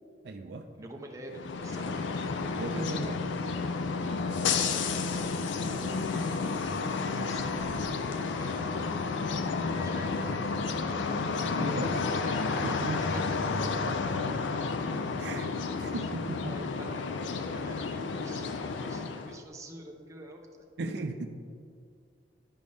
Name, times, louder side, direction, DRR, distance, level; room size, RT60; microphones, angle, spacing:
voice 1, 0.2-0.7 2.5-3.2 11.6-12.0 12.5-13.1 13.6-14.0 15.2-15.5 15.8-16.5 20.8-21.2, right 3 dB, 65° right, 5 dB, 0.5 m, -37 dB
voice 2, 0.7-2.0 4.9-7.9 8.4-10.5 13.0-13.9 15.9-16.1 16.4-20.4 20.8-20.9, right 1 dB, 15° right, 1 dB, 0.7 m, -47 dB
sound 1, 1.3-19.4, left 4 dB, 90° left, 0.4 m, -31 dB
11.0 x 5.2 x 3.4 m, 2.3 s
head